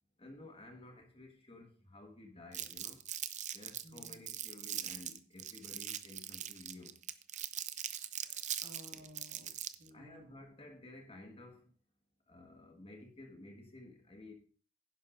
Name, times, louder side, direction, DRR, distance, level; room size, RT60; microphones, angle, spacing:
voice 1, 0.2-3.0 3.5-7.0 8.9-9.1 9.9-11.7 12.3-14.3, left 2 dB, 25° left, 1.6 m, -53 dB
Crumpling crinkling, 2.5-9.9, right 11 dB, 35° right, 0.5 m, -41 dB
voice 2, 3.8-4.2 8.2-9.5 9.8-10.3, equal, 60° right, 2.2 m, -56 dB
11.0 x 10.5 x 2.6 m
head